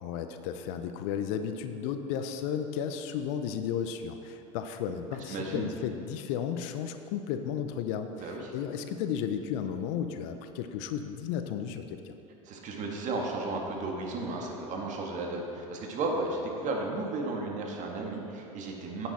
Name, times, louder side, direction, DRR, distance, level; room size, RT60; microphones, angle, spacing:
voice 1, 0.0-12.2, left 8 dB, 65° left, 8 dB, 0.7 m, -34 dB
voice 2, 5.3-5.7 8.2-8.5 12.5-19.1, right 2 dB, 45° right, 0 dB, 1.9 m, -34 dB
10.0 x 8.7 x 4.2 m, 2.8 s
hypercardioid pair, 90°, 17 cm